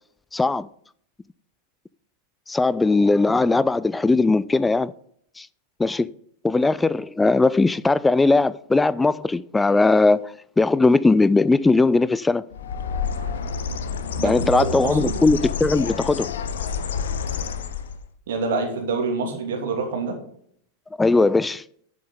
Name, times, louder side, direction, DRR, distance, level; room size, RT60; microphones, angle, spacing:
voice 1, 0.3-0.7 2.5-4.9 5.4-5.5 5.8-6.1 6.4-12.4 14.2-16.3 21.0-21.6, left 3 dB, 10° left, 0.3 m, -19 dB
Bird, 12.5-18.1, left 5 dB, 65° left, 0.9 m, -29 dB
voice 2, 14.1-15.2 18.3-20.2, right 4 dB, 60° right, 2.6 m, -26 dB
11.0 x 7.6 x 3.9 m
figure-of-eight pair, 90°, 0 cm